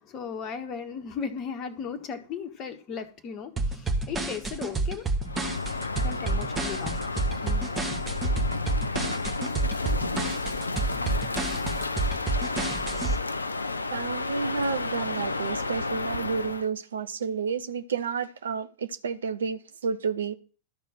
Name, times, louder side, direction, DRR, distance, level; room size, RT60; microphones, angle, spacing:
voice 1, 0.0-5.0 6.0-7.0 7.4-7.7, left 6 dB, 35° left, 1.5 m, -36 dB
sound 1, 3.6-13.2, right 2 dB, 15° right, 2.0 m, -29 dB
Crow, 5.2-16.7, left 3 dB, 80° left, 0.5 m, -32 dB
voice 2, 13.9-20.3, right 5 dB, 65° right, 0.9 m, -31 dB
13.0 x 4.6 x 6.4 m
figure-of-eight pair, 90°, 0 cm